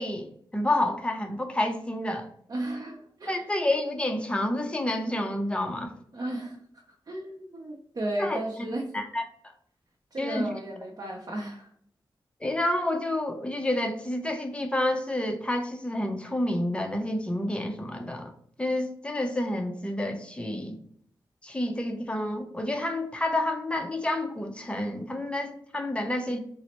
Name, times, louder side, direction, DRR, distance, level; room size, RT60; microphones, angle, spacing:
voice 1, 0.0-2.3 3.3-5.9 8.2-8.7 8.9-9.2 10.2-10.5 12.4-18.3 18.6-20.8 21.4-26.4, left 1 dB, 15° left, 4 dB, 0.6 m, -29 dB
voice 2, 2.5-3.4 6.1-6.6 7.1-8.9 10.1-11.7, right 1 dB, 50° right, -1 dB, 0.6 m, -34 dB
4.0 x 2.1 x 2.9 m, 0.63 s
wide cardioid pair, 75°, 8 cm